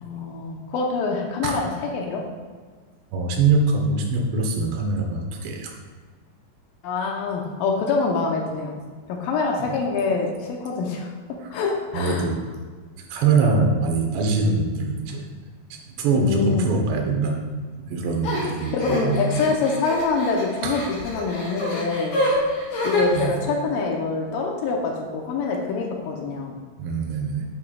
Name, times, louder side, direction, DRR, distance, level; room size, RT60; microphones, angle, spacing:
voice 1, 0.0-2.2 6.8-8.7 9.1-12.3 15.1-15.2 16.1-16.7 18.7-22.2 22.8-26.5, left 4 dB, 80° left, 1 dB, 2.1 m, -25 dB
voice 2, 3.1-5.7 9.7-9.8 11.9-12.4 13.1-15.3 15.7-17.4 17.9-19.4 20.6-20.7 23.1-23.4 26.8-27.4, right 4 dB, 85° right, 2 dB, 3.1 m, -23 dB
sound 1, 18.2-23.2, left 1 dB, 60° left, 3.4 m, -27 dB
8.8 x 8.0 x 2.3 m, 1.5 s
omnidirectional pair, 4.8 m